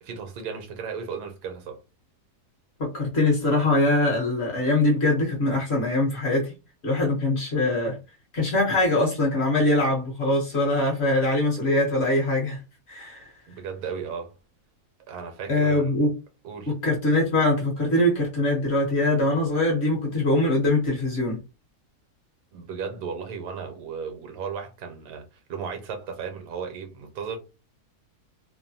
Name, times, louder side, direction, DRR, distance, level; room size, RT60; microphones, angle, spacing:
voice 1, 0.0-1.8 13.5-14.4 15.1-15.9 16.4-16.8 22.5-27.4, right 6 dB, 80° right, 1.2 m, -35 dB
voice 2, 2.9-6.5 6.8-8.0 8.3-12.6 12.9-13.3 15.5-16.1 16.7-21.4, left 2 dB, 45° left, 1.0 m, -23 dB
2.9 x 2.1 x 2.7 m
omnidirectional pair, 1.7 m